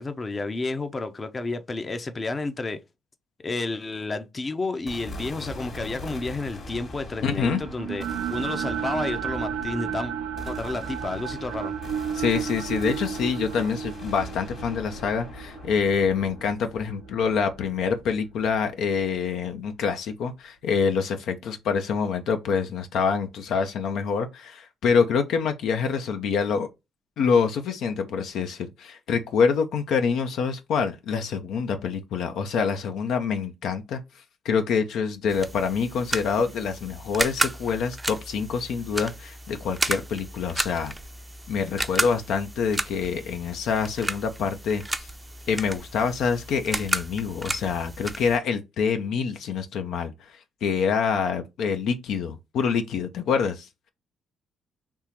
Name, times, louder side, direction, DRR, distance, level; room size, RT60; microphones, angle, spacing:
voice 1, 0.0-2.8 3.4-8.0 8.3-10.1 10.4-11.7, left 3 dB, 35° left, 0.6 m, -31 dB
sound 1, 4.9-19.2, left 1 dB, 50° left, 1.9 m, -41 dB
voice 2, 7.2-7.6 12.1-26.7 27.2-40.9 41.5-45.1 45.5-53.7, left 6 dB, 75° left, 0.6 m, -26 dB
sound 2, 7.5-17.7, right 9 dB, 85° right, 0.4 m, -33 dB
sound 3, 35.3-48.4, right 2 dB, 15° right, 0.5 m, -32 dB
3.6 x 2.9 x 3.0 m
supercardioid pair, 65°, 0 cm